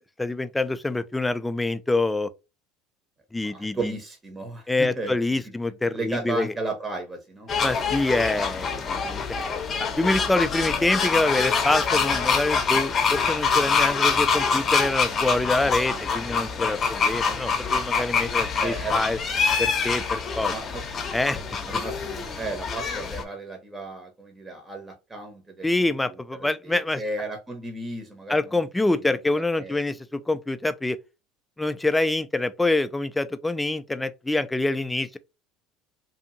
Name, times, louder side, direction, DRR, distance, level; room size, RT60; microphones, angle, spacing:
voice 1, 0.2-2.3 3.3-3.9 4.7-6.5 7.6-9.2 9.9-19.2 19.6-20.5 21.1-21.4 21.7-21.8 25.6-27.0 28.3-31.0 31.6-35.2, left 2 dB, 10° left, 0.3 m, -26 dB
voice 2, 3.4-5.2 5.8-7.5 18.6-19.0 20.4-20.8 21.6-26.1 26.4-28.6 29.1-29.2 29.5-29.8, right 2 dB, 20° right, 0.8 m, -34 dB
sound 1, 7.5-23.2, left 5 dB, 35° left, 0.7 m, -25 dB
2.7 x 2.5 x 2.6 m
hypercardioid pair, 80°, 0 cm